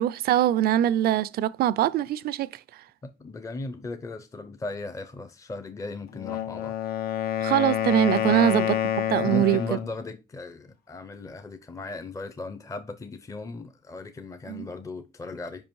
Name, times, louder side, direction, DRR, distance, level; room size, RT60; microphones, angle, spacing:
voice 1, 0.0-2.5 7.4-8.8 9.1-9.6 14.5-14.7, right 12 dB, 70° right, 0.4 m, -23 dB
voice 2, 3.0-6.7 8.3-8.5 9.2-15.7, left 3 dB, 20° left, 0.6 m, -37 dB
Wind instrument woodwind instrument, 6.1-9.9, left 11 dB, 70° left, 0.7 m, -28 dB
5.4 x 5.1 x 4.6 m
cardioid pair, 130°, 16 cm